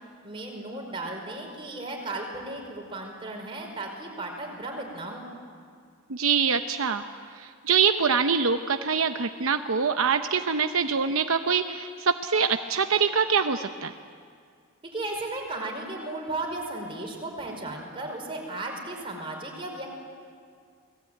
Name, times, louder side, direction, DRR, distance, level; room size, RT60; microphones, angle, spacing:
voice 1, 0.2-5.3 14.9-20.0, right 2 dB, 25° right, 0 dB, 5.3 m, -35 dB
voice 2, 6.1-7.0 7.4-13.9, right 6 dB, 75° right, 7 dB, 0.8 m, -24 dB
29.5 x 20.0 x 9.2 m, 2.1 s
head